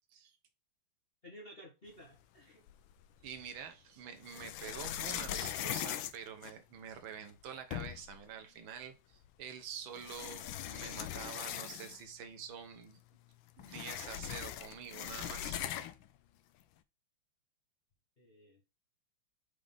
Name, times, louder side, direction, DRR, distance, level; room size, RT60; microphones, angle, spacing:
voice 1, 1.2-2.6 18.2-18.6, equal, 35° left, -2 dB, 1.2 m, -54 dB
sound 1, 2.7-3.4 4.2-7.0 7.4-7.5 7.7-8.2 9.2-9.3 9.9-12.2 12.5-12.6 12.9-16.1, left 11 dB, 75° left, 1.2 m, -40 dB
voice 2, 3.2-13.0 13.6-15.6, right 7 dB, 70° right, 7 dB, 1.7 m, -47 dB
4.9 x 3.8 x 5.1 m, 0.28 s
omnidirectional pair, 2.4 m